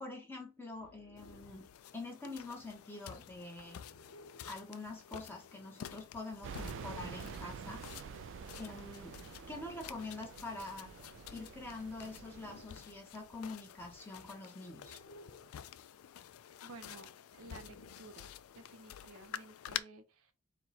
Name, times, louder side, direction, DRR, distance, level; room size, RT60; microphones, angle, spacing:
voice 1, 0.0-1.7 1.9-3.8 4.4-7.8 8.6-11.0 11.3-15.0, left 2 dB, 10° left, 0.9 m, -45 dB
sound 1, 0.7-1.7 3.6-4.6 6.3-7.3 9.0-10.0 12.0-13.0 14.6-15.6 17.3-18.3, left 2 dB, 90° left, 0.9 m, -58 dB
sound 2, 1.2-19.8, left 10 dB, 75° left, 0.3 m, -50 dB
sound 3, 6.4-12.7, right 7 dB, 60° right, 0.3 m, -48 dB
voice 2, 16.6-18.3 18.5-20.3, right 2 dB, 75° right, 0.8 m, -54 dB
4.3 x 2.3 x 4.1 m
head